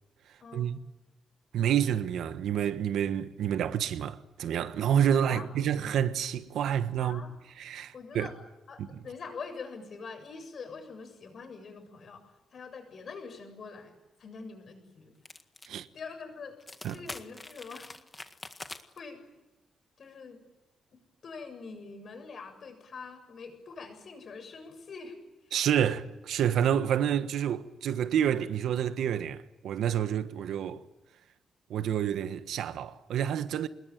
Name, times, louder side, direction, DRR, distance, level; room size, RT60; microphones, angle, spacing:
voice 1, 0.4-0.7 5.3-5.5 7.0-7.3 7.9-15.2 15.9-16.6 16.9-17.9 19.0-19.2 20.0-20.4 20.9-25.2 25.4-26.0, left 4 dB, 45° left, 7.5 m, -44 dB
voice 2, 1.5-7.2 7.6-8.3 15.6-15.9 16.8-17.0 25.5-30.8 31.7-33.7, right 9 dB, 80° right, 1.4 m, -28 dB
sound 1, 15.3-15.7 16.0-16.1 16.6-19.0, left 2 dB, 15° left, 1.8 m, -44 dB
26.5 x 21.5 x 9.3 m
cardioid pair, 140°, 0 cm